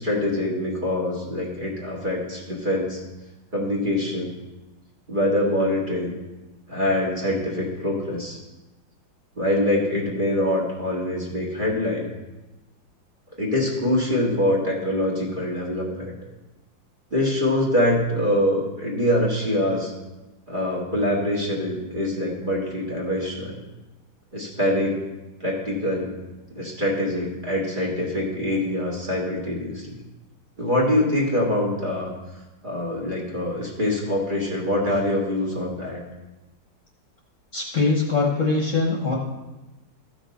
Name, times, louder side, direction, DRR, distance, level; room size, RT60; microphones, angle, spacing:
voice 1, 0.0-3.0 3.5-4.3 5.1-6.1 6.7-8.4 9.4-12.1 13.4-16.1 17.1-19.9 20.5-23.6 24.3-25.0 25.4-26.1 26.6-30.0 30.6-32.1 32.6-36.0, left 1 dB, 25° right, -4 dB, 1.8 m, -24 dB
voice 2, 37.5-39.2, left 3 dB, 45° left, 0 dB, 1.3 m, -22 dB
14.5 x 6.1 x 4.1 m, 1.1 s
omnidirectional pair, 2.0 m